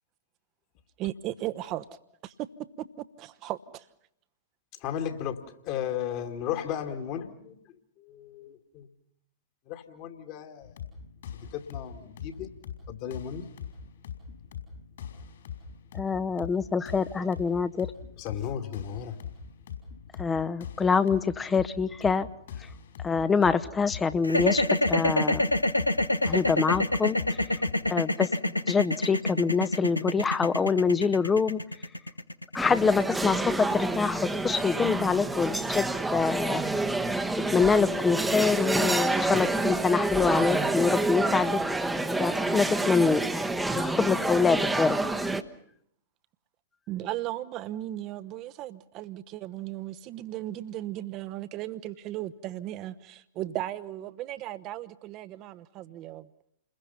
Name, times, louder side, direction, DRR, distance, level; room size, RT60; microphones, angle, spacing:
voice 1, 1.0-1.9 2.2-2.5 2.8-2.9 3.2-3.9 46.9-56.3, right 14 dB, 35° right, 1.0 m, -36 dB
voice 2, 4.8-7.5 8.1-8.9 9.7-10.7 11.5-12.5 12.9-13.5 18.2-19.2, left 9 dB, 40° left, 2.2 m, -35 dB
sound 1, 10.6-27.7, left 8 dB, 60° left, 5.2 m, -42 dB
voice 3, 15.9-17.9 20.2-22.3 23.0-25.5 26.3-27.4 27.9-28.3 28.7-31.6 32.5-36.6 37.5-41.6 42.2-43.2 43.8-45.0, left 5 dB, 15° left, 0.9 m, -25 dB
sound 2, 24.2-34.4, left 1 dB, 90° left, 1.0 m, -26 dB
sound 3, 32.6-45.4, right 2 dB, 5° right, 1.1 m, -28 dB
29.5 x 21.5 x 5.7 m
figure-of-eight pair, 105°, 0 cm